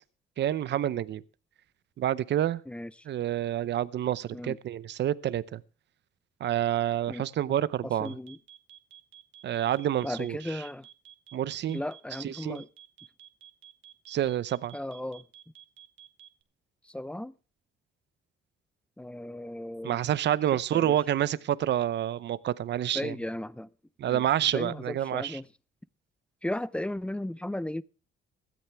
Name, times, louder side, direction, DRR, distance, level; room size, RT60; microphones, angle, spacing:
voice 1, 0.4-1.2 2.0-2.6 3.1-5.6 6.4-8.1 9.4-10.6 11.3-11.8 12.2-12.6 14.1-14.7 19.8-23.1 24.0-25.4, right 11 dB, 60° right, 0.7 m, -28 dB
voice 2, 7.1-7.6 7.8-8.4 10.0-10.9 11.7-12.7 14.7-15.3 16.8-17.3 19.0-20.0 20.7-21.0 22.9-23.7 24.0-24.2 24.5-25.5 26.4-27.8, left 1 dB, 5° left, 0.6 m, -36 dB
sound 1, 8.0-16.4, right 11 dB, 80° right, 1.6 m, -51 dB
16.5 x 13.5 x 3.5 m
cardioid pair, 90°, 20 cm